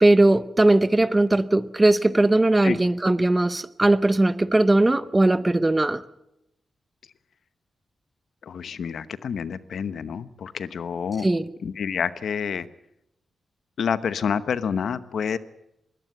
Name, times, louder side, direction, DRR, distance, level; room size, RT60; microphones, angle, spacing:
voice 1, 0.0-6.0 11.2-11.5, right 2 dB, 15° right, 15 dB, 0.8 m, -19 dB
voice 2, 8.5-11.3 11.6-12.7 13.8-15.4, left 7 dB, 65° left, 14 dB, 0.9 m, -28 dB
22.0 x 17.0 x 7.8 m, 0.84 s
wide cardioid pair, 155°, 0 cm